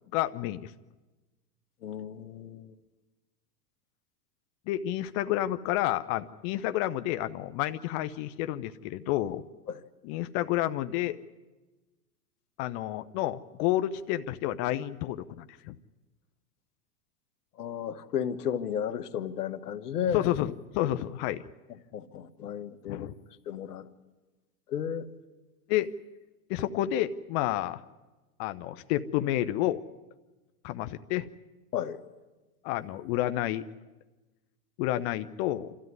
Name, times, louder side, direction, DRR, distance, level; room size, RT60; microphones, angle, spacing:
voice 1, 0.1-0.7 4.7-9.4 10.0-11.2 12.6-15.8 20.1-21.4 22.4-22.5 22.9-23.1 25.7-25.9 26.5-27.8 28.4-29.8 30.6-31.3 32.6-33.6 34.8-35.8, left 14 dB, 45° left, 10 dB, 0.8 m, -30 dB
voice 2, 1.8-2.8 9.7-9.8 17.6-20.3 21.9-23.1 23.5-23.9 24.7-25.1 31.7-32.0, left 8 dB, 85° left, 11 dB, 1.4 m, -33 dB
28.0 x 13.5 x 9.6 m, 1.2 s
hypercardioid pair, 115°, 45 cm